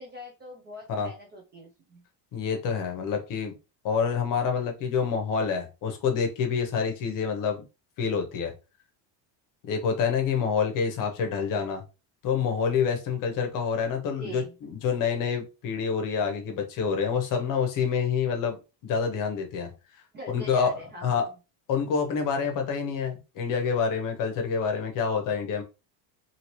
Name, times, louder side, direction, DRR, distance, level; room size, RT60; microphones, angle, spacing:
voice 1, 0.0-2.0 14.2-14.5 20.1-21.4, equal, 25° right, -2 dB, 0.4 m, -43 dB
voice 2, 2.3-3.5 3.8-7.6 8.0-8.5 9.7-11.8 12.2-19.7 20.3-20.7 21.0-21.2 21.7-25.6, left 6 dB, 40° left, 4 dB, 0.8 m, -27 dB
2.8 x 2.8 x 2.9 m, 0.29 s
cardioid pair, 175°, 49 cm